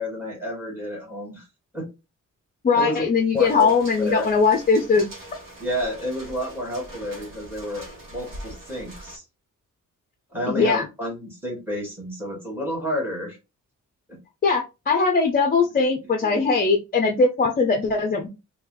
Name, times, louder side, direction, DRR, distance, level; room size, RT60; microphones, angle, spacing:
voice 1, 0.0-1.4 1.7-1.9 2.7-3.0 3.3-3.7 4.0-4.3 5.6-7.8 8.1-9.2 10.3-13.4 16.2-16.4, equal, 5° right, -2 dB, 1.7 m, -30 dB
voice 2, 2.6-5.1 10.5-10.8 14.4-18.3, left 4 dB, 30° left, 5 dB, 0.4 m, -20 dB
sound 1, 3.3-9.2, right 1 dB, 85° right, 1.5 m, -42 dB
3.7 x 2.8 x 3.0 m, 0.27 s
wide cardioid pair, 175°, 32 cm